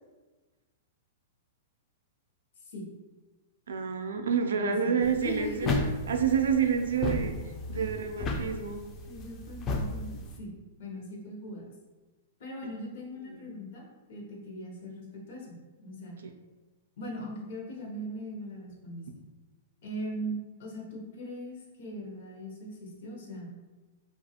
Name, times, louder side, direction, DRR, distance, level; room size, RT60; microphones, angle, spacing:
voice 1, 3.7-5.7 6.1-7.4 7.7-8.8 13.3-13.5, right 7 dB, 85° right, 5 dB, 0.3 m, -28 dB
voice 2, 4.6-5.9 7.7-8.0 9.0-11.7 12.4-16.2 17.0-19.1 19.8-23.7, equal, 65° left, -1 dB, 0.8 m, -40 dB
sound 1, 5.0-10.4, left 3 dB, 25° left, 0.3 m, -34 dB
2.4 x 2.3 x 2.7 m, 1.2 s
hypercardioid pair, 135°, 0 cm